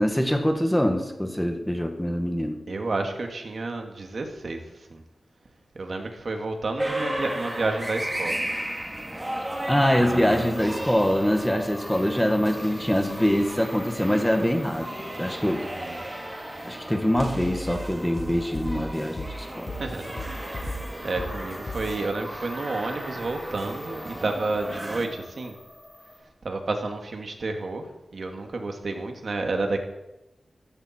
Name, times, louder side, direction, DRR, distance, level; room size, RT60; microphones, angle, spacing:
voice 1, 0.0-2.6 9.7-14.9 15.2-15.7 16.7-19.7, equal, 5° left, 5 dB, 1.8 m, -24 dB
voice 2, 2.7-4.6 4.9-5.0 5.7-8.4 10.0-10.8 15.6-16.0 19.7-20.0 20.6-25.6 26.4-29.8, right 3 dB, 60° right, 4 dB, 2.4 m, -31 dB
sound 1, 6.8-25.0, right 1 dB, 15° right, 2.2 m, -35 dB
sound 2, 7.2-26.2, left 1 dB, 25° left, 7.0 m, -46 dB
sound 3, 17.2-22.1, left 1 dB, 50° left, 5.7 m, -35 dB
16.5 x 15.5 x 4.6 m, 0.95 s
wide cardioid pair, 100°, 0 cm